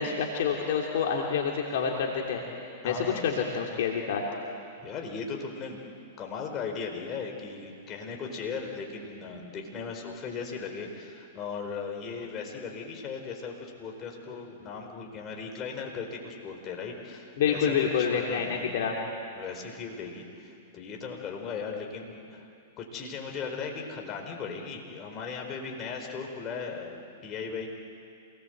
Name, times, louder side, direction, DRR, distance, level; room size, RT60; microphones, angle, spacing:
voice 1, 0.0-2.4 2.8-4.2 17.4-19.0, left 7 dB, 60° left, 0 dB, 2.9 m, -27 dB
voice 2, 2.8-3.3 4.8-5.8 6.2-18.7 19.3-22.4 22.8-27.7, left 5 dB, 30° left, 1 dB, 4.6 m, -37 dB
27.5 x 19.5 x 8.1 m, 2.5 s
hypercardioid pair, 110°, 0 cm